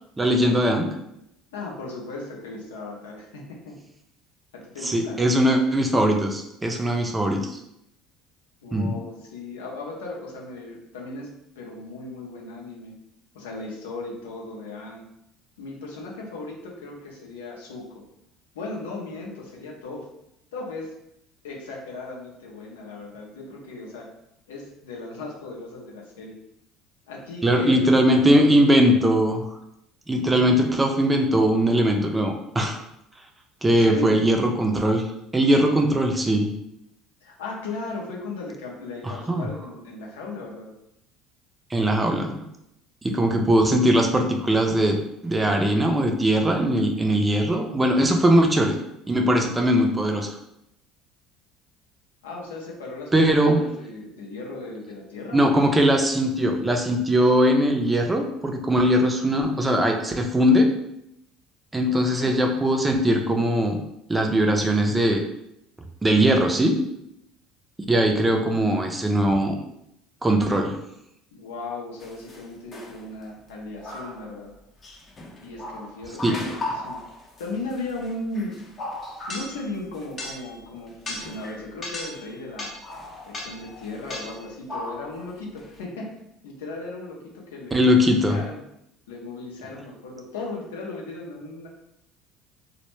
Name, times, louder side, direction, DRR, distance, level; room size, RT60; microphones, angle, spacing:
voice 1, 0.2-0.9 4.8-7.6 8.7-8.9 27.4-29.4 30.1-32.8 33.6-35.0 35.3-36.5 39.0-39.4 41.7-42.4 43.0-48.8 49.1-50.4 53.1-53.6 55.3-60.7 61.7-63.8 64.1-65.2 66.0-66.8 67.9-69.6 70.2-70.7 76.2-76.4 87.7-88.4, equal, 20° right, 3 dB, 0.4 m, -20 dB
voice 2, 1.5-3.8 4.5-5.2 8.6-12.9 13.3-15.0 15.6-18.0 18.5-20.1 20.5-20.9 21.4-24.1 24.5-26.3 27.1-28.8 33.7-34.2 37.2-40.7 52.2-53.3 53.7-55.4 61.9-62.3 71.3-74.5 75.4-77.0 77.4-78.6 79.3-82.8 83.2-86.1 86.4-88.6 89.1-91.7, left 2 dB, 85° left, -2 dB, 0.6 m, -36 dB
sound 1, 72.0-72.4 72.7-73.2 73.8-74.4 74.8-80.6 80.9-82.3 82.6-85.3 85.6-85.8, left 1 dB, 35° left, 0.6 m, -37 dB
2.1 x 2.1 x 3.1 m, 0.79 s
hypercardioid pair, 75°, 0 cm